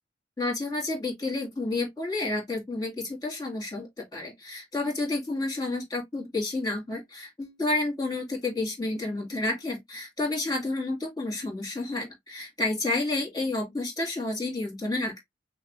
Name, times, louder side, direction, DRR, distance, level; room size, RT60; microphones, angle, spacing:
voice 1, 0.4-15.2, left 2 dB, 20° left, 2.2 m, -30 dB
5.7 x 2.0 x 3.1 m
head